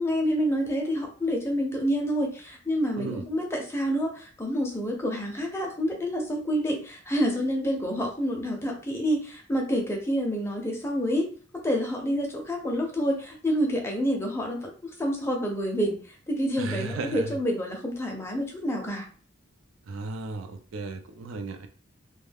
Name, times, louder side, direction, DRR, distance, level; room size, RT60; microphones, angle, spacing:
voice 1, 0.0-11.2 11.6-14.7 15.0-16.0 16.3-19.1, equal, 15° left, 1 dB, 0.5 m, -28 dB
voice 2, 16.6-17.4 19.9-21.7, right 3 dB, 85° right, 6 dB, 0.4 m, -35 dB
2.2 x 2.2 x 3.3 m, 0.41 s
head